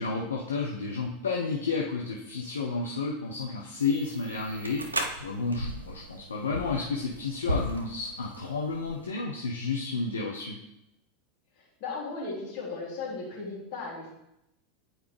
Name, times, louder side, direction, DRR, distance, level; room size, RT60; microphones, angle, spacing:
voice 1, 0.0-10.6, left 4 dB, 70° left, -2 dB, 0.7 m, -31 dB
sound 1, 3.8-9.1, equal, 80° right, 0.6 m, -36 dB
voice 2, 11.8-14.1, left 3 dB, 50° left, -5 dB, 2.6 m, -36 dB
9.0 x 4.6 x 3.3 m, 0.86 s
figure-of-eight pair, 85°, 0 cm